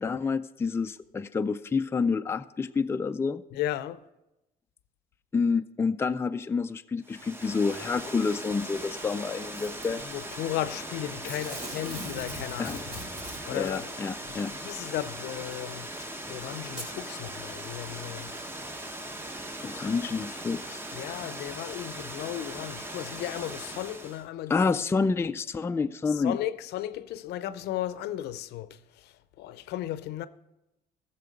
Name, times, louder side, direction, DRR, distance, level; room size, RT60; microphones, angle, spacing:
voice 1, 0.0-3.4 5.3-10.0 12.6-12.8 13.5-14.5 19.6-20.8 24.5-26.4, left 4 dB, 15° left, 0.3 m, -28 dB
voice 2, 3.5-4.0 10.0-13.0 13.5-13.9 14.3-15.9 16.3-18.3 20.9-24.7 26.1-30.3, left 12 dB, 75° left, 0.6 m, -35 dB
Water, 7.0-24.2, right 1 dB, 15° right, 0.9 m, -39 dB
Packing tape duct tape / Tearing, 9.5-10.0 11.2-13.8 14.9-15.0 15.9-16.0 16.7-16.9 17.6-17.7, right 1 dB, 50° right, 3.8 m, -41 dB
14.5 x 6.8 x 5.2 m
cardioid pair, 110°, 17 cm